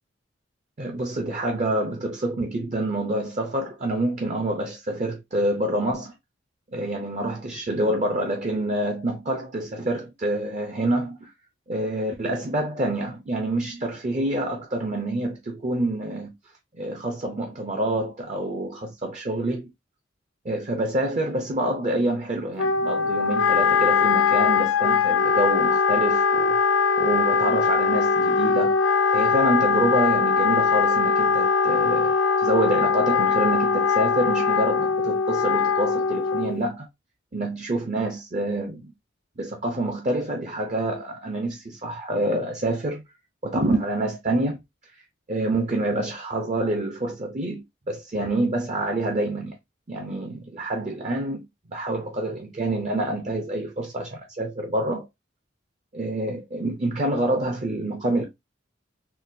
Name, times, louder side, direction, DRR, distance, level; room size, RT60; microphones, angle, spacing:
voice 1, 0.8-6.1 6.7-11.3 11.7-16.3 16.8-19.7 20.4-26.6 27.0-28.8 29.1-32.1 32.4-36.9 37.3-38.9 39.4-43.0 43.4-44.6 45.3-49.6 49.9-51.4 51.7-55.1 55.9-58.2, right 1 dB, 40° right, 0.5 m, -27 dB
Wind instrument woodwind instrument, 22.6-36.6, left 5 dB, 80° left, 0.4 m, -21 dB
3.8 x 2.2 x 2.6 m
head